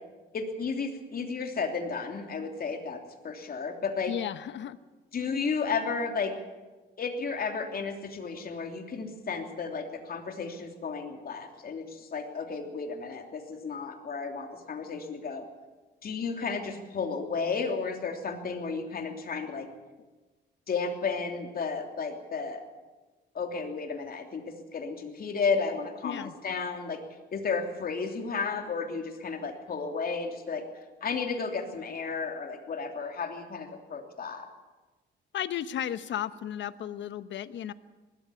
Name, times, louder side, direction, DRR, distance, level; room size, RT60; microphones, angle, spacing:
voice 1, 0.3-4.1 5.1-6.3 7.0-15.4 16.0-19.7 20.7-22.6 23.3-27.0 27.3-30.6 31.0-34.5, left 5 dB, 50° left, 4 dB, 3.1 m, -33 dB
voice 2, 4.1-4.8 26.0-26.3 35.3-37.7, left 10 dB, 65° left, 14 dB, 1.0 m, -34 dB
19.5 x 14.0 x 9.8 m, 1.2 s
cardioid pair, 90°, 20 cm